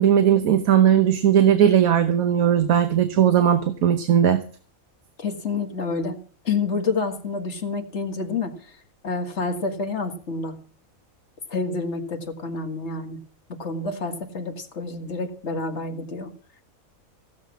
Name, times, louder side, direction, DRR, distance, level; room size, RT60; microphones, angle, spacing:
voice 1, 0.0-4.4, right 9 dB, 80° right, 9 dB, 1.5 m, -18 dB
voice 2, 5.2-6.2 6.4-8.8 9.0-10.6 11.5-13.2 13.6-16.3, left 4 dB, 50° left, 4 dB, 2.2 m, -28 dB
16.5 x 7.7 x 7.3 m, 0.42 s
omnidirectional pair, 1.5 m